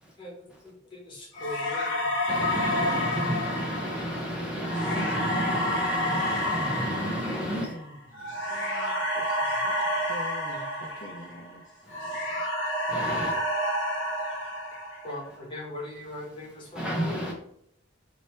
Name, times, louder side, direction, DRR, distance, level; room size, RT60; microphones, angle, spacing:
voice 1, 0.2-2.1 15.0-17.2, left 1 dB, 25° left, -3 dB, 1.1 m, -40 dB
sound 1, 1.4-11.6 11.9-15.3, left 1 dB, 80° left, 0.9 m, -30 dB
voice 2, 2.2-7.7 8.3-8.6 9.7-10.0 11.8-12.4 12.9-13.4 16.7-17.3, equal, 5° right, -3 dB, 0.5 m, -32 dB
voice 3, 7.5-9.7 10.0-11.8, left 2 dB, 45° left, -1 dB, 0.4 m, -44 dB
3.2 x 2.8 x 4.3 m, 0.71 s
head